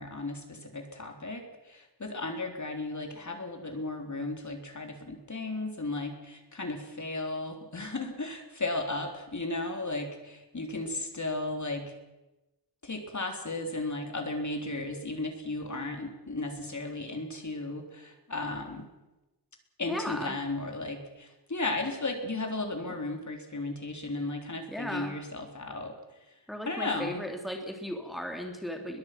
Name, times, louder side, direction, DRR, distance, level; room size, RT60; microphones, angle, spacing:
voice 1, 0.0-11.9 12.8-18.9 19.8-25.9 26.7-27.2, left 2 dB, 45° left, 4 dB, 3.7 m, -35 dB
voice 2, 19.9-20.3 24.7-25.2 26.5-29.0, equal, ahead, 3 dB, 2.6 m, -36 dB
23.0 x 21.5 x 6.0 m, 1.0 s
wide cardioid pair, 100°, 41 cm